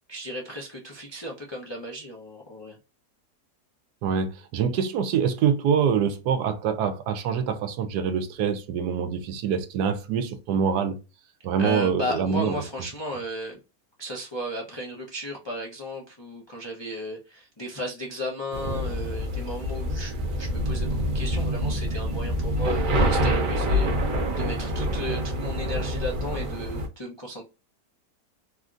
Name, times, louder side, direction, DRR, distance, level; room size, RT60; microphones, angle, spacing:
voice 1, 0.1-2.8 11.6-13.6 14.0-27.4, equal, 45° left, 0.3 m, -35 dB
voice 2, 4.0-11.0 11.4-12.6, right 7 dB, 85° right, 1.2 m, -25 dB
sound 1, 18.5-26.9, equal, 60° right, 0.5 m, -26 dB
3.3 x 2.5 x 2.4 m
omnidirectional pair, 1.7 m